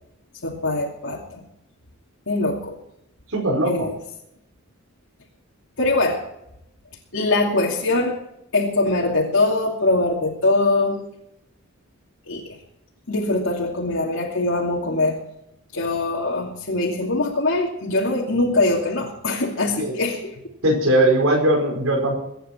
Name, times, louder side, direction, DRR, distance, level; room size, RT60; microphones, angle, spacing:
voice 1, 0.4-1.4 2.3-2.8 3.7-3.9 5.8-6.2 7.1-8.2 8.5-11.0 12.3-12.4 13.1-15.2 15.7-20.5, left 2 dB, 65° left, -4 dB, 2.7 m, -22 dB
voice 2, 3.3-3.9 19.8-19.9 20.6-22.1, right 1 dB, 75° right, -1 dB, 5.1 m, -19 dB
23.0 x 10.0 x 4.6 m, 0.79 s
head